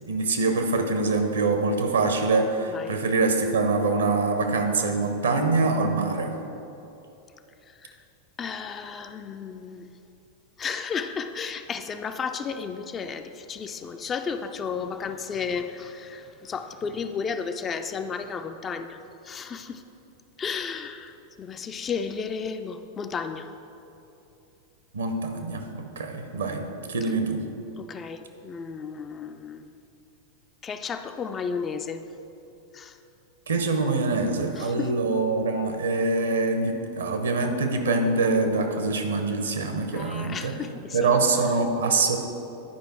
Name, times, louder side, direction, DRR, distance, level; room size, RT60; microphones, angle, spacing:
voice 1, 0.1-6.4 24.9-27.4 33.5-40.5 40.9-42.2, right 3 dB, 70° right, 5 dB, 0.8 m, -24 dB
voice 2, 7.7-8.0 8.4-9.9 10.6-19.8 20.4-23.5 27.8-29.7 30.6-32.1 32.7-33.0 34.6-34.9 39.9-41.2, left 6 dB, 25° left, 8 dB, 0.4 m, -33 dB
10.5 x 5.1 x 4.5 m, 2.9 s
figure-of-eight pair, 90°, 0 cm